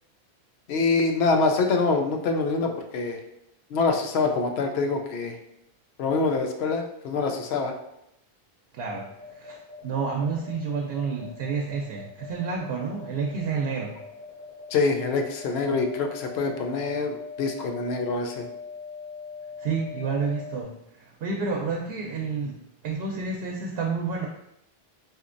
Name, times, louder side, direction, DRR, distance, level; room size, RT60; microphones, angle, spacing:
voice 1, 0.7-3.2 3.7-5.4 6.0-7.7 14.7-18.5, left 4 dB, 80° left, 4 dB, 0.8 m, -25 dB
voice 2, 8.7-9.6 9.8-13.9 19.6-22.6 22.8-24.3, right 5 dB, 75° right, 0 dB, 0.8 m, -30 dB
sound 1, 8.9-20.6, left 4 dB, 10° left, 0.8 m, -41 dB
4.2 x 2.7 x 2.5 m, 0.81 s
omnidirectional pair, 1.1 m